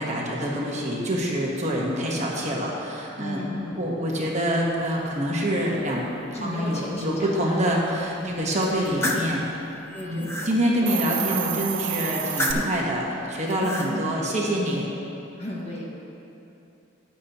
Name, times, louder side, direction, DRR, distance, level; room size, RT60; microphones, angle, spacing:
voice 1, 0.0-3.4 3.8-9.4 10.0-14.9, equal, 35° right, -3 dB, 1.2 m, -26 dB
voice 2, 3.2-3.8 6.3-8.6 9.9-10.6 10.9-11.4 11.7-11.9 13.6-14.3 15.4-15.9, equal, 30° left, -5 dB, 1.6 m, -35 dB
sound 1, 8.6-9.3 9.9-10.5 12.1-12.8 13.4-13.9, left 1 dB, 10° left, 0.7 m, -29 dB
Hiss, 10.7-12.5, right 9 dB, 60° right, 0.6 m, -29 dB
13.5 x 9.8 x 3.0 m, 2.9 s
head